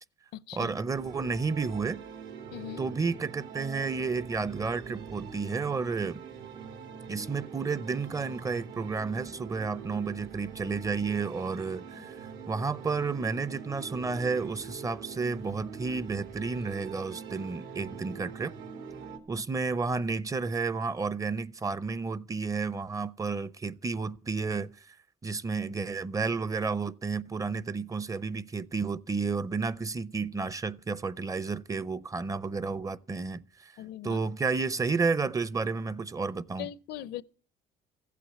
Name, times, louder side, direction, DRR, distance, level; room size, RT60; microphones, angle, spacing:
voice 1, 0.5-2.0 2.8-6.2 7.1-18.5 19.3-25.0 25.2-33.7 34.0-36.7, right 4 dB, 20° right, 0.6 m, -31 dB
sound 1, 0.9-19.2, right 6 dB, 85° right, 2.6 m, -44 dB
voice 2, 2.5-2.8 11.9-12.1 33.8-34.2 36.6-37.2, left 12 dB, 75° left, 0.6 m, -40 dB
15.0 x 8.4 x 8.3 m
cardioid pair, 110°, 17 cm